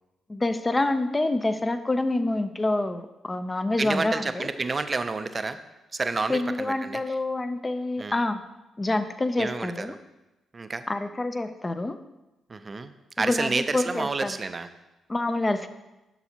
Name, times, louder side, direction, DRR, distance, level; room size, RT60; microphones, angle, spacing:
voice 1, 0.3-4.5 6.3-8.4 8.8-9.9 10.9-12.0 13.2-14.3 15.1-15.7, left 2 dB, 25° left, 10 dB, 0.5 m, -27 dB
voice 2, 3.8-5.6 5.9-7.2 8.0-8.2 9.4-10.0 10.5-10.8 12.5-12.9 13.2-14.7, right 3 dB, 35° right, 10 dB, 0.4 m, -29 dB
7.0 x 5.7 x 2.8 m, 1.0 s
supercardioid pair, 60°, 0 cm